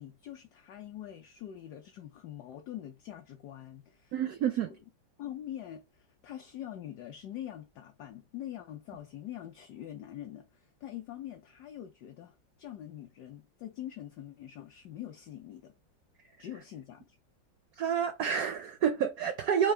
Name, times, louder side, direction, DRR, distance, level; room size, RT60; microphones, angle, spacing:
voice 1, 0.0-4.1 5.2-15.7 16.4-17.2, left 11 dB, 70° left, 1.0 m, -44 dB
voice 2, 4.1-4.7 17.8-19.7, right 8 dB, 75° right, 0.8 m, -29 dB
4.7 x 2.4 x 3.2 m
omnidirectional pair, 2.1 m